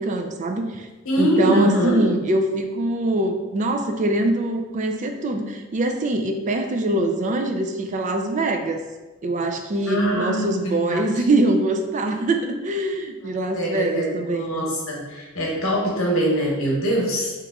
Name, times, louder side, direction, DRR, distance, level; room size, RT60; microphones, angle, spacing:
voice 1, 0.0-0.9 1.2-8.8 9.2-14.6, right 1 dB, 35° right, 5 dB, 0.3 m, -23 dB
voice 2, 1.0-2.0 9.9-11.0 13.5-17.3, right 1 dB, 65° left, -2 dB, 1.0 m, -23 dB
3.5 x 3.0 x 3.5 m, 1.2 s
head